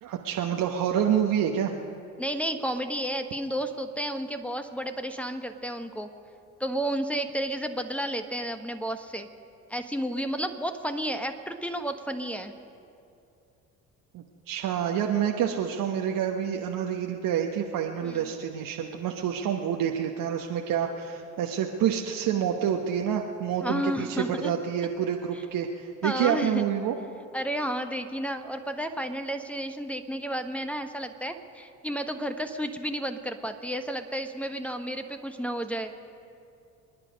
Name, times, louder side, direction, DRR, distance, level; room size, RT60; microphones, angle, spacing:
voice 1, 0.0-1.7 14.1-27.0, right 9 dB, 50° right, 2 dB, 1.2 m, -28 dB
voice 2, 2.2-6.1 6.6-9.3 9.7-12.5 18.0-18.3 23.6-24.5 25.3-25.4 26.0-26.6 27.3-35.9, equal, 5° left, 7 dB, 1.2 m, -32 dB
25.5 x 10.5 x 5.3 m, 2.6 s
hypercardioid pair, 55°, 41 cm